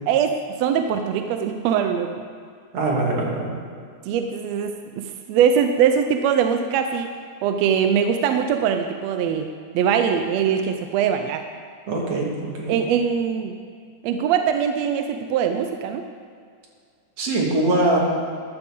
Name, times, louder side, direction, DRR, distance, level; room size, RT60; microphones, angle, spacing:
voice 1, 0.1-2.1 4.1-7.1 7.4-9.5 9.7-11.4 12.7-13.6 14.0-16.0, right 7 dB, 75° right, 6 dB, 1.6 m, -22 dB
voice 2, 2.7-3.5 11.9-12.8 17.2-18.0, right 2 dB, 55° right, -2 dB, 2.9 m, -22 dB
13.5 x 12.5 x 3.7 m, 2.1 s
omnidirectional pair, 3.4 m